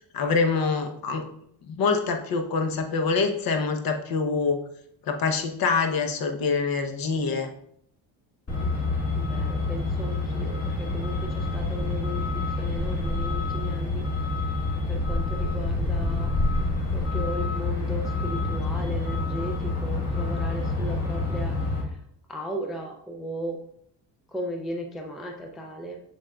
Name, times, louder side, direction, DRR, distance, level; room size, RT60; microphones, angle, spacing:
voice 1, 0.1-1.3 1.7-4.6 5.1-7.5, left 4 dB, 55° left, 5 dB, 0.9 m, -25 dB
Truck, 8.5-21.8, left 2 dB, 35° left, 1.6 m, -27 dB
voice 2, 9.1-14.1 14.9-16.5 16.9-22.0 22.3-23.6 24.3-26.0, equal, ahead, 2 dB, 0.3 m, -36 dB
7.0 x 6.4 x 2.3 m, 0.70 s
cardioid pair, 175°, 43 cm